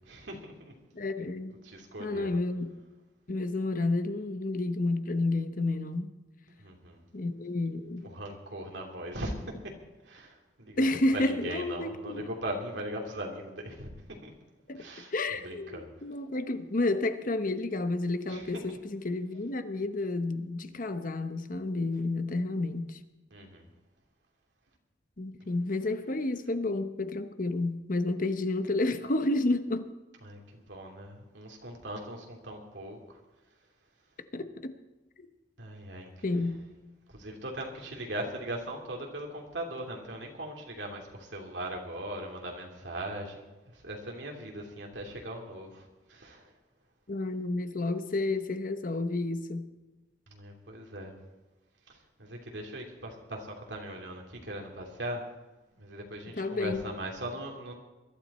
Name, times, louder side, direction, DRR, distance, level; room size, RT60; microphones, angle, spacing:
voice 1, 0.1-0.7 1.6-2.4 6.5-7.0 8.0-9.3 10.1-13.9 14.2-14.3 14.7-15.1 15.4-15.9 18.3-18.4 23.3-23.6 30.2-33.0 35.6-36.1 37.1-43.5 43.8-45.8 46.1-46.4 50.3-51.1 52.2-55.2 55.8-57.7, right 1 dB, 80° right, 3.0 m, -39 dB
voice 2, 0.9-1.6 2.0-2.8 3.3-6.1 7.1-8.1 10.8-12.3 14.7-14.8 15.1-23.0 25.2-29.9 34.3-34.7 36.2-36.6 47.1-49.7 56.3-56.8, left 2 dB, 50° left, 1.0 m, -30 dB
21.5 x 12.5 x 4.3 m
head